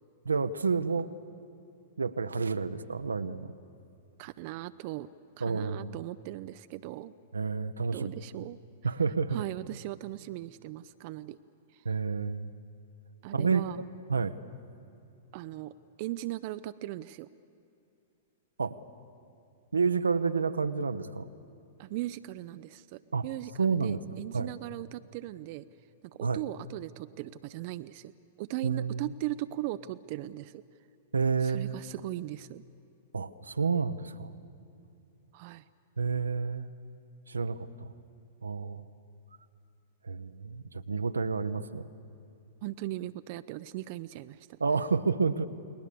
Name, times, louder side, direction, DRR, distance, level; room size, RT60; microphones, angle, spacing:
voice 1, 0.3-1.1 2.0-3.5 5.4-5.9 7.3-8.1 8.8-9.4 11.8-12.5 13.3-14.4 18.6-18.8 19.7-21.3 23.1-23.2 23.6-24.5 26.2-26.4 28.6-29.1 31.1-31.8 33.1-34.3 36.0-36.7 37.3-37.9 38.4-38.8 40.0-41.9 44.6-45.5, right 5 dB, 85° right, 10 dB, 0.8 m, -30 dB
voice 2, 4.2-5.1 5.4-7.1 7.9-8.6 9.3-11.4 11.7-11.9 13.2-13.8 15.3-17.3 21.8-25.7 26.0-28.1 28.4-30.6 31.4-32.6 35.3-35.6 42.6-44.6, right 16 dB, 50° right, 12 dB, 0.5 m, -38 dB
29.5 x 20.0 x 6.9 m, 2.6 s
hypercardioid pair, 105°, 0 cm